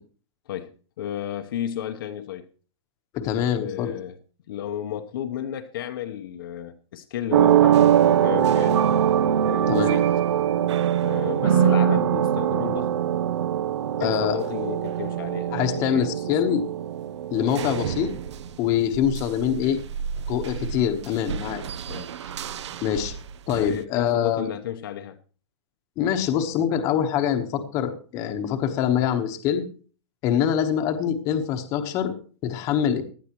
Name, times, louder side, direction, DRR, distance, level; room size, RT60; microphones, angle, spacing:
voice 1, 1.0-2.5 3.6-4.2 4.5-8.9 9.4-10.1 11.0-12.9 14.0-16.6 17.6-17.8 21.1-21.2 21.9-22.1 23.5-25.2 32.6-32.7, left 10 dB, 50° left, 6 dB, 0.9 m, -33 dB
voice 2, 3.1-3.9 9.7-10.0 14.0-14.4 15.5-16.6 17.3-18.1 18.6-19.8 20.3-21.6 22.8-23.1 23.5-24.5 26.0-29.6 30.2-32.1 32.4-33.0, left 9 dB, 20° left, 6 dB, 1.1 m, -24 dB
sound 1, 7.3-18.7 18.9-23.7, right 9 dB, 75° right, 0.7 m, -23 dB
18.0 x 11.0 x 3.0 m, 0.39 s
supercardioid pair, 175°, 15 cm